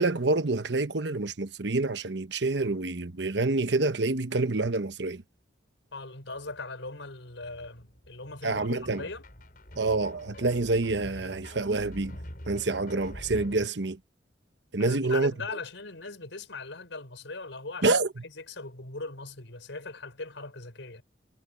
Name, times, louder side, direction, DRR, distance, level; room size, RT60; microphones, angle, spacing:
voice 1, 0.0-5.2 8.4-9.0 9.8-12.2 12.5-14.0 14.7-15.3 17.8-18.1, right 3 dB, 70° right, 1.1 m, -27 dB
voice 2, 5.9-9.3 14.8-21.0, left 3 dB, 85° left, 4.7 m, -40 dB
sound 1, 6.4-6.6 6.9-13.7, equal, 50° left, 6.6 m, -45 dB
head